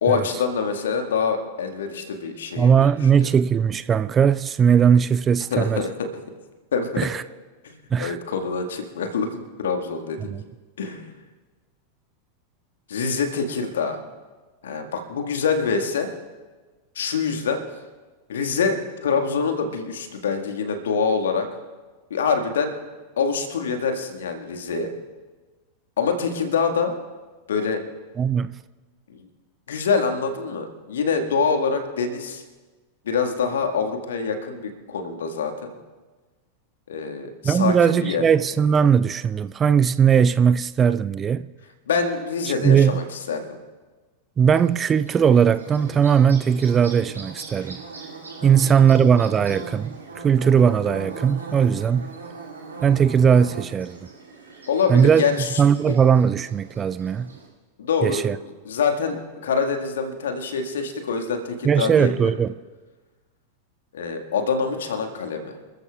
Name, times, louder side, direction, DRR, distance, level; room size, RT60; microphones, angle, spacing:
voice 1, 0.0-2.9 3.2-3.3 5.5-6.1 6.7-7.1 7.6-10.3 10.8-11.1 12.9-14.0 14.6-16.1 16.9-17.6 18.3-21.5 22.1-22.7 23.2-24.9 26.0-26.9 27.5-27.8 29.1-29.2 29.7-32.4 33.0-35.7 36.9-38.2 41.9-43.5 48.4-48.6 54.7-55.5 55.9-56.0 57.8-58.2 58.6-62.3 63.9-65.6, left 5 dB, 65° left, 1.7 m, -25 dB
voice 2, 2.6-5.9 7.0-7.2 7.9-8.2 10.2-10.4 28.2-28.5 37.4-41.5 42.6-43.0 44.4-47.8 48.4-52.1 52.8-54.0 54.9-55.2 55.6-57.3 58.0-58.4 61.6-62.5, right 7 dB, 20° right, 0.4 m, -19 dB
Bird / Buzz, 44.5-57.5, right 3 dB, 80° right, 5.5 m, -40 dB
28.5 x 14.0 x 2.4 m
figure-of-eight pair, 90°, 0 cm